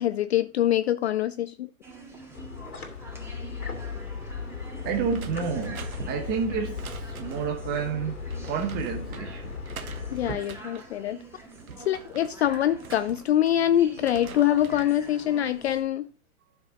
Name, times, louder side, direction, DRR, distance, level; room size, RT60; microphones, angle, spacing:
voice 1, 0.0-1.7 10.1-11.2 11.9-16.0, left 11 dB, 45° left, 0.5 m, -24 dB
sound 1, 1.8-15.8, right 2 dB, 5° right, 1.9 m, -46 dB
sound 2, 2.3-10.3, left 5 dB, 80° left, 2.3 m, -37 dB
voice 2, 4.8-8.2 8.5-9.5, right 6 dB, 20° right, 1.1 m, -30 dB
sound 3, 5.1-7.6 8.3-9.3 9.6-10.9 11.4-13.6 13.9-15.0 15.4-15.8, right 6 dB, 70° right, 1.2 m, -44 dB
12.5 x 6.0 x 3.9 m
figure-of-eight pair, 115°, 44 cm